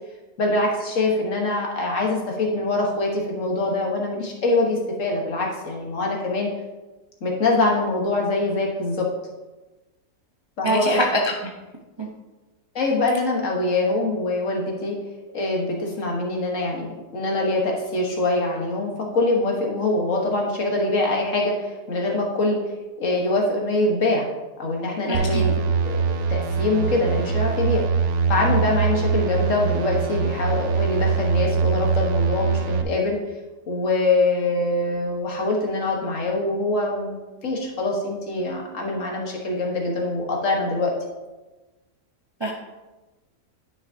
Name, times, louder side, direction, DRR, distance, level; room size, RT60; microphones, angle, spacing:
voice 1, 0.4-6.5 7.2-9.1 10.6-11.0 12.7-14.9 15.3-16.9 17.1-22.6 23.0-24.3 24.6-26.0 26.3-27.8 28.3-33.2 33.7-37.2 37.4-40.9, left 2 dB, 55° left, 0 dB, 1.6 m, -24 dB
voice 2, 10.6-11.3 12.0-12.1 25.1-25.4 42.4-42.5, equal, 25° right, -2 dB, 0.6 m, -23 dB
sound 1, 25.1-32.8, right 5 dB, 65° right, 0.8 m, -23 dB
10.5 x 6.1 x 2.7 m, 1.1 s
omnidirectional pair, 1.6 m